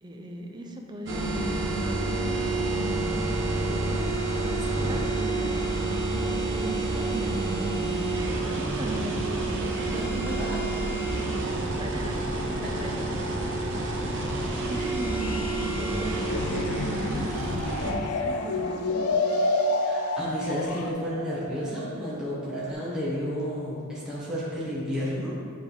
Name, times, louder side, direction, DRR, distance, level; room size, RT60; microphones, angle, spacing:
voice 1, 0.0-6.0 6.5-19.2, right 1 dB, 20° right, 2 dB, 0.5 m, -39 dB
sound 1, 1.1-17.9, right 2 dB, 55° right, 0.9 m, -28 dB
voice 2, 9.9-10.6 14.1-14.7 19.8-25.3, equal, 5° right, -9 dB, 1.3 m, -32 dB
sound 2, 15.2-20.9, left 2 dB, 75° left, 0.5 m, -29 dB
sound 3, 17.3-22.7, right 4 dB, 70° right, 0.4 m, -39 dB
7.7 x 3.5 x 4.8 m, 2.2 s
head